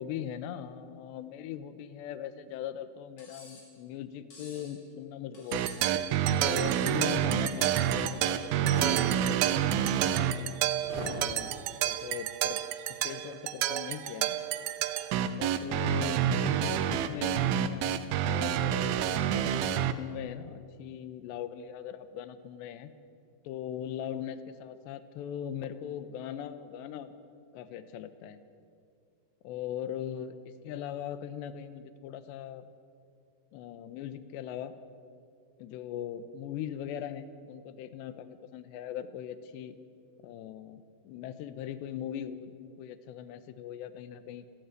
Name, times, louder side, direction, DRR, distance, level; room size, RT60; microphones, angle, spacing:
voice 1, 0.0-6.0 6.4-10.5 10.9-11.6 11.8-12.6 12.9-14.4 15.3-22.9 23.4-27.1 27.5-28.4 29.4-32.7 33.5-34.7 35.6-39.8 40.2-44.5, left 9 dB, 75° left, 12 dB, 3.1 m, -40 dB
Cutlery silverware, 3.2-3.7 4.3-4.7 5.3-6.0 6.5-7.0 7.6-8.1 8.9-9.3, left 2 dB, 45° left, 6.5 m, -53 dB
Gang of the black sprites, 5.5-19.9, right 10 dB, 80° right, 2.2 m, -28 dB
sound 1, 8.6-9.0 10.8-11.2, right 2 dB, 30° right, 4.5 m, -37 dB
30.0 x 13.5 x 9.4 m, 2.3 s
omnidirectional pair, 5.3 m